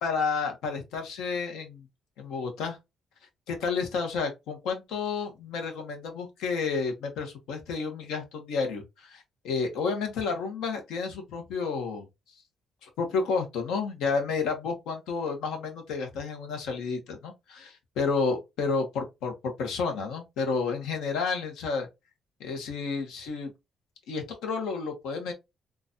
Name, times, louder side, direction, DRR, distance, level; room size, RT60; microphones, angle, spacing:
voice 1, 0.0-1.9 2.2-2.8 3.5-12.0 12.8-21.9 22.4-23.5 24.1-25.3, left 5 dB, 90° left, 1.0 m, -31 dB
3.9 x 2.4 x 2.6 m
cardioid pair, 90°, 0 cm